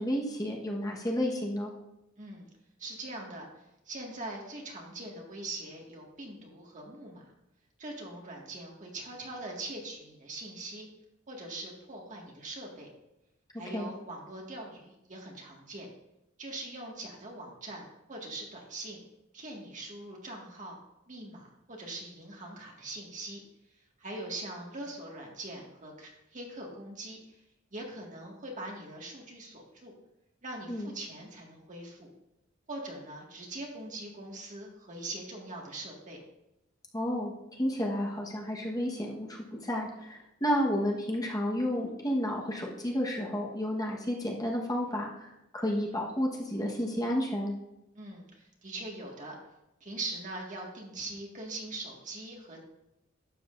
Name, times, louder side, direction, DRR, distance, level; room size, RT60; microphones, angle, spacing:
voice 1, 0.0-1.7 13.7-13.9 30.7-30.9 36.9-47.5, equal, 20° left, -2 dB, 1.3 m, -31 dB
voice 2, 2.2-2.5 2.8-7.3 7.8-10.9 11.3-12.9 13.6-15.9 16.4-19.0 19.3-20.8 21.1-23.4 24.0-27.4 27.7-29.9 30.4-32.1 32.7-36.2 47.9-49.4 49.8-52.6, right 2 dB, 40° right, -1 dB, 1.9 m, -42 dB
12.0 x 7.9 x 2.6 m, 0.91 s
head